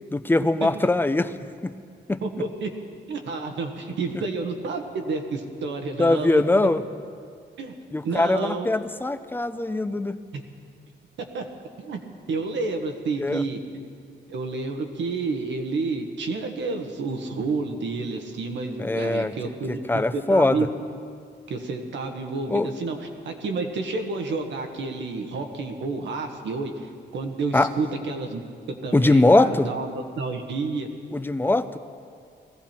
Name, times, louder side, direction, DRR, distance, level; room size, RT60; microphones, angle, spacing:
voice 1, 0.1-1.3 1.6-1.8 2.1-2.2 6.0-6.8 7.9-10.2 13.2-13.4 18.8-19.3 19.7-20.6 22.5-22.7 27.5-27.7 28.9-29.7 31.1-31.8, left 2 dB, 10° left, 12 dB, 0.5 m, -21 dB
voice 2, 2.2-2.7 3.1-6.4 7.6-7.7 8.0-8.7 10.3-10.4 11.3-11.4 11.9-12.0 12.3-13.8 14.3-20.7 21.5-28.4 28.8-30.9, right 3 dB, 80° right, 4 dB, 1.5 m, -30 dB
19.0 x 15.0 x 4.4 m, 2.2 s
cardioid pair, 95°, 19 cm